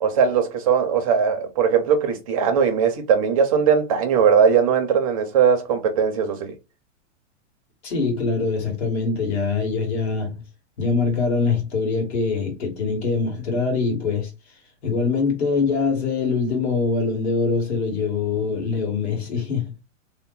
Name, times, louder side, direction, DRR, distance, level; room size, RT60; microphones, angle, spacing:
voice 1, 0.0-6.6, right 7 dB, 30° right, 0.5 m, -19 dB
voice 2, 7.8-10.4 10.8-14.3 14.8-19.7, left 4 dB, 60° left, 1.7 m, -23 dB
2.9 x 2.0 x 3.7 m
supercardioid pair, 170°, 37 cm